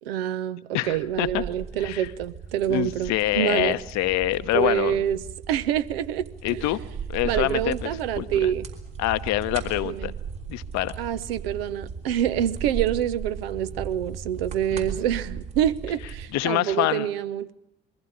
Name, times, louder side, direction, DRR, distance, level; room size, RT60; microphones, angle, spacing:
voice 1, 0.0-3.8 4.5-5.2 5.5-6.2 6.5-6.6 7.2-8.7 9.8-10.1 11.0-17.5, right 10 dB, 80° right, 0.8 m, -26 dB
voice 2, 0.7-1.4 1.8-2.1 2.7-5.0 6.4-6.8 7.1-7.9 8.2-8.5 9.0-10.1 10.5-10.9 14.7-14.9 16.3-17.1, left 15 dB, 65° left, 0.9 m, -25 dB
sound 1, 0.8-16.3, right 6 dB, 65° right, 3.5 m, -37 dB
21.5 x 15.0 x 9.9 m
hypercardioid pair, 45°, 29 cm